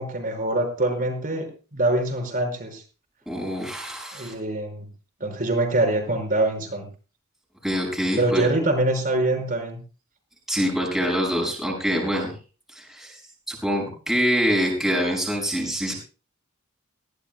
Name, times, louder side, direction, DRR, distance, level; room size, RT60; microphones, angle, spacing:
voice 1, 0.0-2.8 4.1-4.9 5.2-6.9 8.2-9.8, right 2 dB, 40° right, 3 dB, 5.7 m, -24 dB
voice 2, 3.3-4.3 7.6-8.5 10.5-12.3 12.7-13.2 13.5-15.9, equal, ahead, -2 dB, 6.0 m, -25 dB
20.0 x 17.5 x 2.3 m, 0.36 s
head